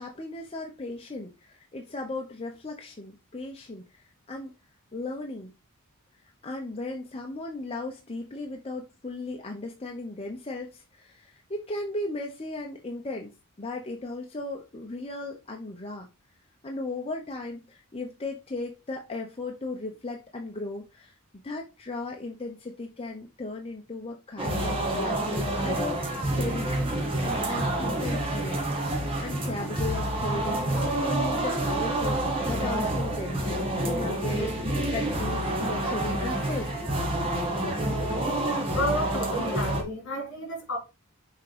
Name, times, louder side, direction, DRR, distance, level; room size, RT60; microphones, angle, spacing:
voice 1, 0.0-4.5 4.9-5.5 6.4-13.3 13.6-16.1 16.6-21.1 21.4-26.7 27.2-28.6 29.2-36.7, left 2 dB, 25° left, 0.9 m, -36 dB
sound 1, 24.4-39.8, right 1 dB, 25° right, 1.8 m, -28 dB
voice 2, 38.7-40.8, equal, 60° left, 2.6 m, -31 dB
6.4 x 3.7 x 5.0 m
head